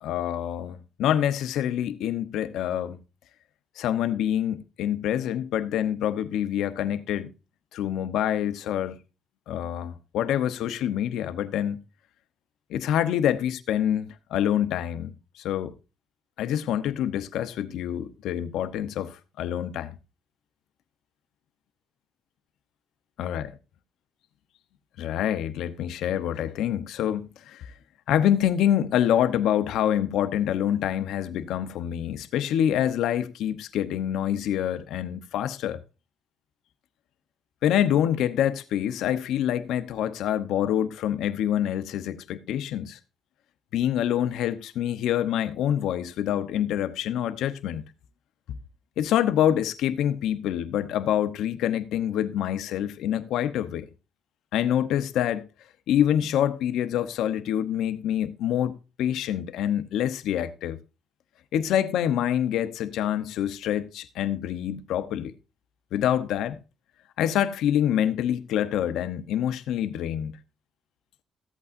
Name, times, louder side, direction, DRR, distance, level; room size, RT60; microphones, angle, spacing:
voice 1, 0.0-3.0 3.8-7.3 7.7-9.0 9.5-11.8 12.7-15.7 16.4-20.0 23.2-23.5 25.0-27.6 28.1-35.8 37.6-43.0 43.7-47.9 49.0-53.9 54.5-55.4 55.9-60.8 61.5-65.3 65.9-66.6 67.2-70.4, left 10 dB, 85° left, 0.8 m, -26 dB
15.0 x 8.4 x 2.6 m
cardioid pair, 90°, 0 cm